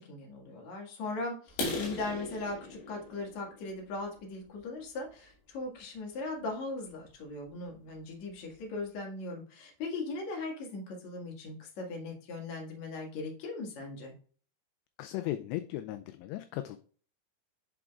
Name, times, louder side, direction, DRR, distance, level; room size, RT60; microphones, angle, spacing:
voice 1, 0.0-14.1, left 3 dB, 50° left, 0 dB, 2.5 m, -39 dB
sound 1, 1.5-5.2 5.8-6.0 6.4-6.5 6.9-7.1 7.4-7.5 8.0-8.1 8.3-8.8, left 2 dB, 65° left, 4.8 m, -39 dB
voice 2, 15.0-16.8, left 14 dB, 85° left, 9 dB, 2.6 m, -36 dB
11.0 x 5.0 x 2.4 m, 0.43 s
omnidirectional pair, 5.3 m